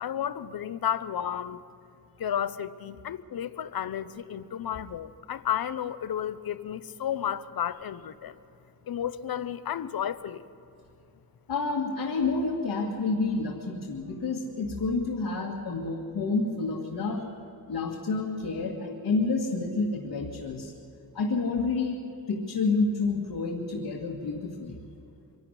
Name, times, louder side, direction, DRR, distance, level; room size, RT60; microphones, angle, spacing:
voice 1, 0.0-1.6 2.2-8.4 8.9-10.4, left 9 dB, 70° left, 14 dB, 0.8 m, -32 dB
voice 2, 11.5-17.2 17.7-20.7 21.1-22.0 22.3-24.8, left 3 dB, 85° left, -1 dB, 2.0 m, -29 dB
24.5 x 12.5 x 9.8 m, 2.6 s
wide cardioid pair, 125°, 37 cm